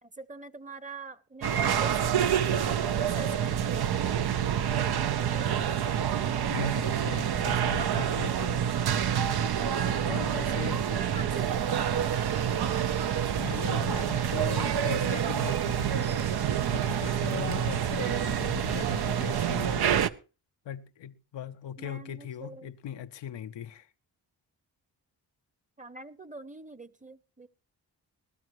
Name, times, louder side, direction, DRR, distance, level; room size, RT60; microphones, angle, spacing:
voice 1, 0.0-2.3 2.8-4.4 4.7-5.5 10.9-11.8 21.8-22.7 25.8-27.5, right 3 dB, 20° right, 1.0 m, -44 dB
sound 1, 1.4-20.1, right 9 dB, 60° right, 0.8 m, -27 dB
voice 2, 6.5-8.7 10.1-10.9 13.4-16.1 16.7-19.9 20.6-23.9, left 9 dB, 85° left, 0.8 m, -39 dB
sound 2, 11.7-19.7, right 6 dB, 80° right, 1.3 m, -42 dB
20.0 x 12.5 x 3.1 m
cardioid pair, 55°, 42 cm